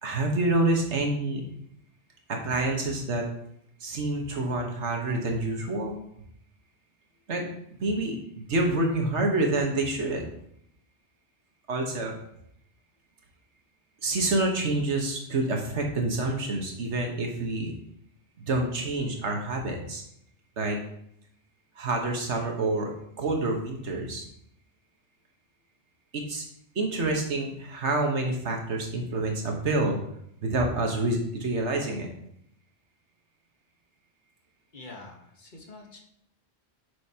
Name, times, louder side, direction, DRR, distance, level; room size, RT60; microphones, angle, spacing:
voice 1, 0.0-1.4 2.3-3.2 3.8-6.0 7.3-7.5 7.8-10.3 11.7-12.2 14.0-17.7 18.4-20.0 20.6-20.8 21.8-22.9 23.2-24.2 26.1-26.4 26.7-30.0 30.4-32.1, right 2 dB, 80° right, 2 dB, 1.6 m, -27 dB
voice 2, 34.7-36.0, left 2 dB, 45° left, 1 dB, 1.4 m, -46 dB
8.0 x 6.4 x 2.9 m, 0.73 s
omnidirectional pair, 1.2 m